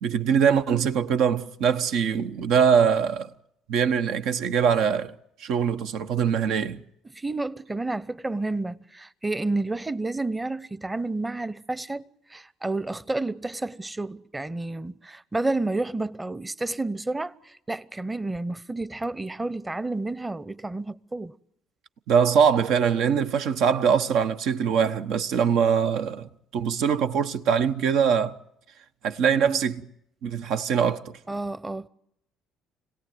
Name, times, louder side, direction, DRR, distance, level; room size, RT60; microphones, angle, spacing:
voice 1, 0.0-3.3 3.7-5.1 5.4-6.8 22.1-28.3 29.0-29.9 30.2-31.2, right 7 dB, 70° right, 1.2 m, -23 dB
voice 2, 7.1-12.0 12.3-21.4 31.3-31.9, right 2 dB, 15° right, 0.9 m, -30 dB
26.0 x 18.0 x 9.3 m
supercardioid pair, 75°, 0 cm